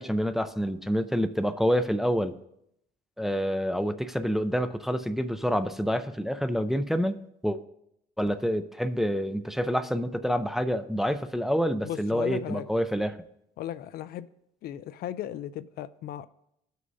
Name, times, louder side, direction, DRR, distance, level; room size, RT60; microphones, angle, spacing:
voice 1, 0.0-2.4 3.2-7.2 7.4-7.6 8.2-13.2, equal, ahead, 0.4 m, -27 dB
voice 2, 11.8-12.7 13.6-14.3 14.6-16.3, left 11 dB, 65° left, 0.4 m, -36 dB
16.5 x 6.4 x 2.7 m
cardioid pair, 110°, 17 cm